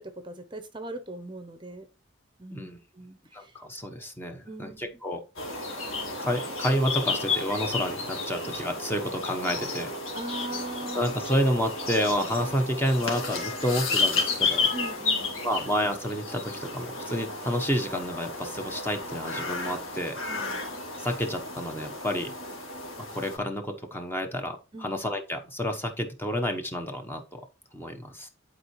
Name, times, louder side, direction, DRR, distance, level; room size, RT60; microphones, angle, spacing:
voice 1, 0.0-1.8 2.4-3.5 4.5-5.0 10.1-11.1 14.7-15.7 20.3-20.6 24.7-25.0, right 2 dB, 20° right, 0.8 m, -40 dB
voice 2, 3.3-5.2 6.2-9.9 10.9-14.7 15.4-20.2 21.0-22.3 23.1-27.4 27.7-28.3, equal, 10° left, 0.9 m, -29 dB
sound 1, 5.4-23.4, left 3 dB, 75° left, 2.3 m, -32 dB
11.0 x 4.5 x 3.1 m
head